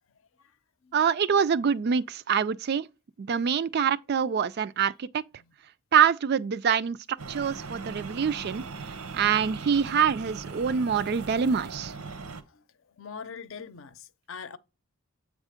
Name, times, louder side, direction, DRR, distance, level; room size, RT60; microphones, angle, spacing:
voice 1, 0.9-2.9 3.2-5.2 5.9-8.6 9.1-11.9, right 7 dB, 45° right, 0.3 m, -25 dB
sound 1, 7.2-12.4, right 4 dB, 80° right, 0.9 m, -39 dB
voice 2, 13.0-14.6, left 6 dB, 60° left, 0.6 m, -42 dB
8.1 x 3.6 x 5.0 m
head